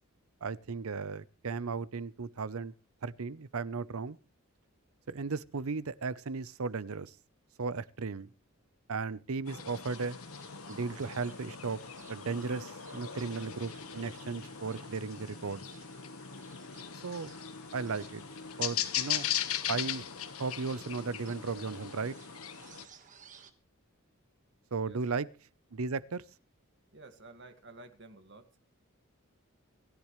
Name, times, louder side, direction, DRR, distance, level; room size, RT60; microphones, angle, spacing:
voice 1, 0.4-2.7 3.0-4.2 5.1-7.1 7.6-8.3 8.9-10.2 10.7-11.8 12.1-15.6 17.0-17.3 17.7-18.2 18.6-19.3 19.7-20.1 20.4-22.2 24.7-25.3 25.7-26.2, right 4 dB, 80° right, 0.7 m, -35 dB
sound 1, 9.5-22.9, left 9 dB, 80° left, 1.3 m, -39 dB
sound 2, 9.7-23.5, right 6 dB, 35° right, 1.4 m, -58 dB
voice 2, 24.8-25.2 26.9-28.6, right 2 dB, 55° right, 1.9 m, -52 dB
26.5 x 10.5 x 3.2 m
head